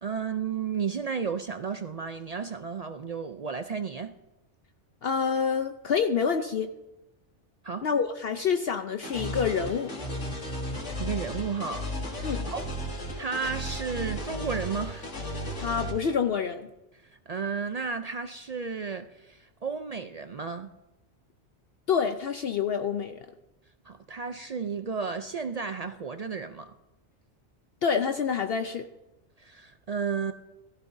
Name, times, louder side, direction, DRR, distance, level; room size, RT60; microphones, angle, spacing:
voice 1, 0.0-4.2 7.6-7.9 11.0-11.9 12.4-12.7 13.2-15.1 17.0-20.7 23.8-26.7 29.4-30.3, right 5 dB, 55° right, 0.4 m, -33 dB
voice 2, 5.0-6.7 7.8-9.9 12.2-12.5 15.6-16.7 21.9-23.3 27.8-28.9, left 6 dB, 60° left, 0.8 m, -27 dB
sound 1, 9.0-15.9, equal, 90° left, 2.4 m, -34 dB
17.0 x 15.0 x 2.7 m
omnidirectional pair, 1.2 m